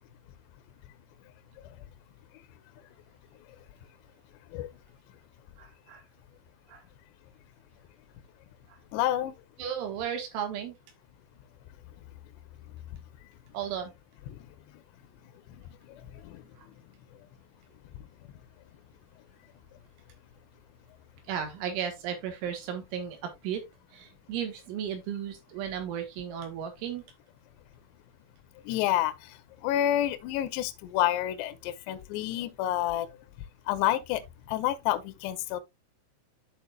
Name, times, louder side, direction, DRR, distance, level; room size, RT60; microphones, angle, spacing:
voice 1, 5.6-6.0 6.7-6.8 8.7-8.8 9.6-10.8 13.5-13.9 16.6-16.7 21.3-23.6 23.9-27.0, right 8 dB, 80° right, 3.8 m, -35 dB
voice 2, 8.9-9.3 16.3-16.4 28.7-29.1 29.6-33.1 33.7-34.2 34.5-35.6, left 13 dB, 80° left, 2.6 m, -28 dB
13.0 x 4.4 x 2.2 m
omnidirectional pair, 5.5 m